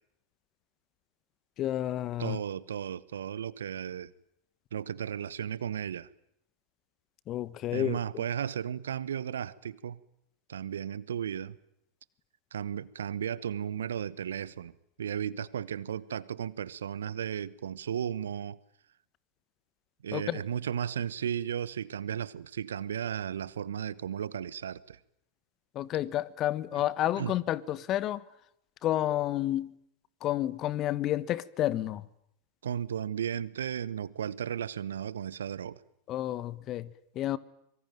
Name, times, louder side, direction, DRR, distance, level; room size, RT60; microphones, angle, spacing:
voice 1, 1.6-2.4 7.3-8.0 20.1-20.4 25.7-28.2 28.8-29.7 30.2-32.1 36.1-37.4, left 13 dB, 40° left, 1.4 m, -30 dB
voice 2, 2.2-4.1 4.7-6.1 7.7-10.0 10.5-11.6 12.5-18.6 20.0-25.0 27.2-27.3 32.6-35.8, right 9 dB, 75° right, 1.1 m, -35 dB
25.5 x 23.5 x 9.1 m
figure-of-eight pair, 90°, 0 cm